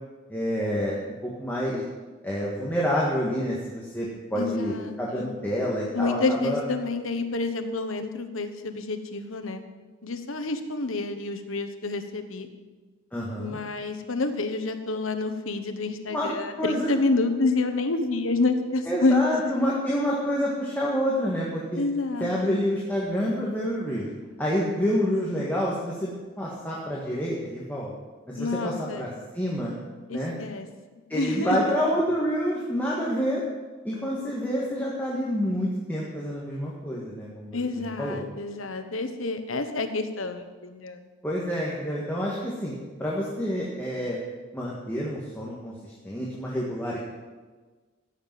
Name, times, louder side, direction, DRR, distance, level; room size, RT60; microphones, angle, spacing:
voice 1, 0.3-1.8 2.2-6.6 13.1-13.6 16.1-16.3 16.6-16.9 18.9-21.8 22.2-24.1 24.4-27.9 28.3-29.1 29.3-29.8 30.1-30.3 31.1-33.4 33.8-38.2 41.2-42.7 43.0-44.2 44.5-47.0, equal, 10° left, -5 dB, 1.8 m, -28 dB
voice 2, 4.3-5.4 5.9-9.6 10.0-12.5 13.4-19.2 19.6-19.7 21.7-22.6 28.4-29.1 30.1-30.7 31.1-31.7 37.5-41.1, left 3 dB, 80° left, 8 dB, 1.2 m, -28 dB
15.0 x 6.8 x 7.6 m, 1.3 s
head